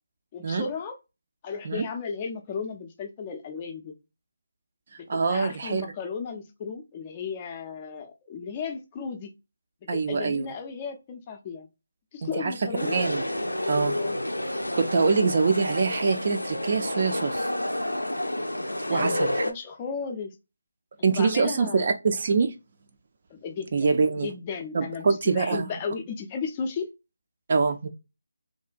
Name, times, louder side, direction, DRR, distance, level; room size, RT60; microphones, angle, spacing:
voice 1, 0.3-1.0 1.4-4.0 5.0-9.3 9.9-11.7 12.1-13.0 13.9-14.2 15.2-15.3 18.8-20.4 21.0-21.9 23.3-26.9, left 5 dB, 25° left, 0.4 m, -35 dB
voice 2, 4.9-5.9 9.9-10.5 12.2-12.5 12.9-13.2 13.7-14.0 14.8-17.5 18.9-19.4 21.0-22.5 23.7-24.3 24.7-25.7 27.5-27.9, right 4 dB, 40° right, 0.4 m, -24 dB
sound 1, 12.8-19.5, left 1 dB, 90° left, 0.4 m, -29 dB
2.7 x 2.1 x 2.4 m
figure-of-eight pair, 155°, 0 cm